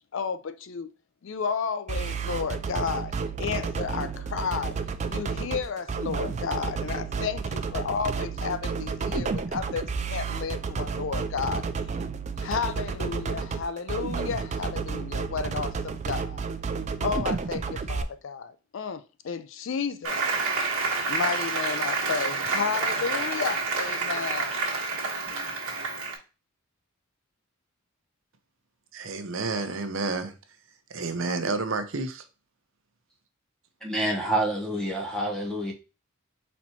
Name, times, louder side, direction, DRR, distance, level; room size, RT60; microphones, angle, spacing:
voice 1, 0.1-0.9 1.2-4.8 5.1-11.6 12.4-16.5 17.0-20.2 21.1-24.6, left 6 dB, 60° left, 0.4 m, -32 dB
sound 1, 1.9-18.0, right 5 dB, 30° right, 0.3 m, -31 dB
Applause, 20.0-26.2, right 4 dB, 85° right, 1.2 m, -28 dB
voice 2, 28.9-30.3 30.9-32.2, right 3 dB, 65° right, 0.7 m, -30 dB
voice 3, 33.8-35.7, right 1 dB, 5° left, 1.0 m, -27 dB
4.3 x 4.2 x 2.8 m
head